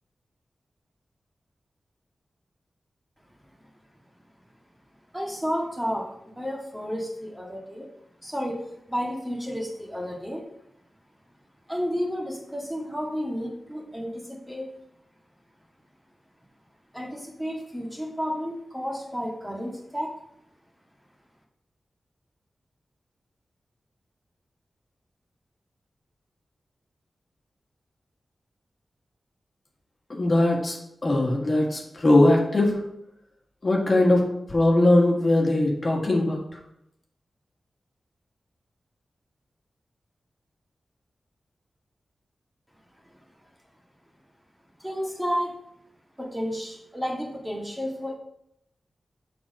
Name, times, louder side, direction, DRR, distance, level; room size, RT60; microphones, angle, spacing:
voice 1, 5.1-7.9 8.2-10.5 11.7-14.7 16.9-20.1 44.8-45.6 46.2-48.1, equal, 5° right, -2 dB, 1.8 m, -31 dB
voice 2, 30.1-32.8 33.6-36.4, left 1 dB, 45° left, -1 dB, 1.7 m, -21 dB
6.3 x 4.3 x 5.3 m, 0.79 s
cardioid pair, 45°, 0 cm